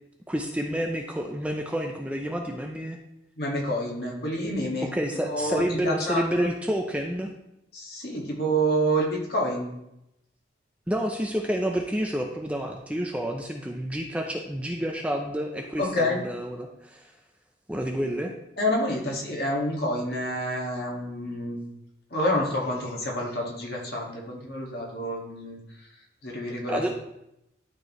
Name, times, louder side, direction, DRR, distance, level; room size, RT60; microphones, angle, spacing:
voice 1, 0.3-3.0 4.9-7.3 10.9-17.1 17.7-18.3 26.7-26.9, equal, 5° right, 2 dB, 0.5 m, -29 dB
voice 2, 3.4-4.9 5.2-6.5 7.7-9.7 15.8-16.2 18.6-21.6 22.1-25.6 26.2-26.9, equal, 55° left, -2 dB, 1.9 m, -28 dB
12.0 x 4.5 x 3.1 m, 0.83 s
head